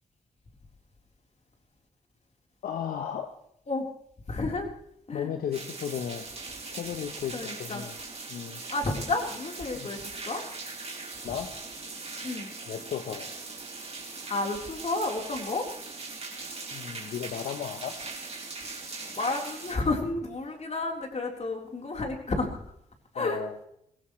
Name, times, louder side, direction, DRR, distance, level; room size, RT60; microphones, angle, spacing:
voice 1, 2.6-3.3 5.1-6.3 6.7-8.0 8.3-8.6 9.7-9.9 11.2-11.5 12.7-13.3 16.7-18.0 23.1-23.6, left 9 dB, 90° left, 7 dB, 0.9 m, -35 dB
voice 2, 4.3-4.7 5.1-5.3 7.3-7.8 8.7-10.4 12.2-12.5 14.3-15.7 19.1-22.6 23.1-23.4, left 2 dB, 50° left, 1 dB, 4.0 m, -31 dB
sound 1, 5.5-19.8, right 3 dB, 45° right, 3.8 m, -40 dB
22.0 x 17.0 x 3.2 m, 0.73 s
supercardioid pair, 50°, 15 cm